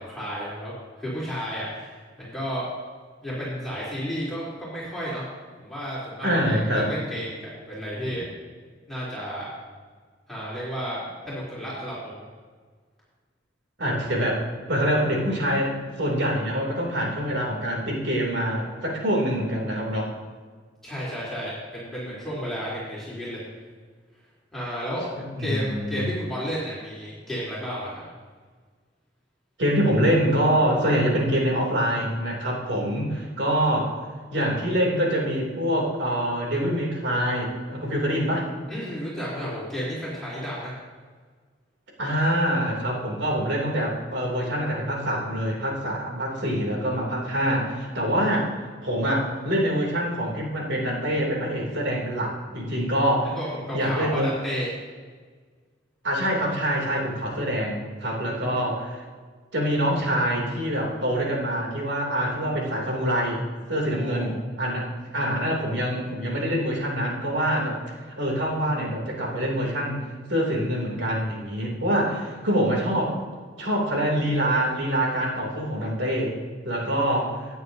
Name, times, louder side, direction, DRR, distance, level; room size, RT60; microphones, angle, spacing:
voice 1, 0.0-2.6 3.2-5.3 5.6-8.2 8.9-9.5 10.3-11.0 11.2-12.2 20.8-23.4 24.5-25.1 25.4-28.0 38.7-40.7 53.4-54.7 58.2-58.7 63.8-64.3 76.8-77.2, equal, ahead, -10 dB, 3.3 m, -32 dB
voice 2, 6.2-6.9 13.8-14.4 14.7-20.1 25.4-26.1 29.6-34.0 34.3-38.5 42.0-48.5 48.8-53.4 53.7-54.3 56.0-59.0 59.5-63.4 63.7-64.9 65.1-70.0 70.3-73.2 73.6-76.3 76.6-77.5, equal, 85° right, -2 dB, 2.9 m, -25 dB
16.5 x 9.2 x 2.7 m, 1.5 s
head